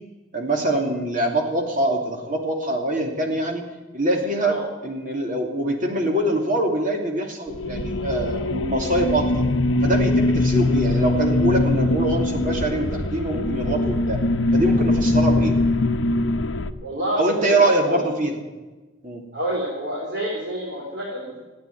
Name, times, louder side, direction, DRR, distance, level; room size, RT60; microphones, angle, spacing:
voice 1, 0.3-3.6 3.9-4.6 4.8-9.5 9.8-14.2 14.5-15.6 17.2-18.4 19.0-19.2, right 1 dB, 45° right, 2 dB, 2.7 m, -24 dB
sound 1, 7.5-16.7, left 2 dB, 90° left, 0.8 m, -22 dB
voice 2, 16.8-18.1 19.3-21.4, equal, 65° right, -4 dB, 3.9 m, -28 dB
15.0 x 9.5 x 9.5 m, 1.2 s
head